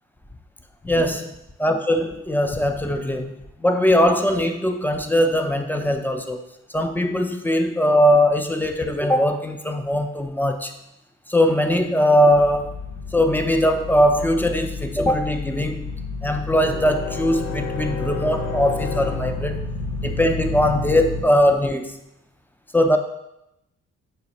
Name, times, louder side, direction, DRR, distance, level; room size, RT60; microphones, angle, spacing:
voice 1, 0.8-1.3 1.6-6.4 6.7-10.7 11.3-12.8 13.1-15.9 16.2-19.6 20.0-22.0 22.7-23.0, equal, 5° left, 5 dB, 0.3 m, -20 dB
sound 1, 12.3-21.2, left 3 dB, 70° left, 0.8 m, -30 dB
4.2 x 2.4 x 4.0 m, 0.84 s
cardioid pair, 90°, 30 cm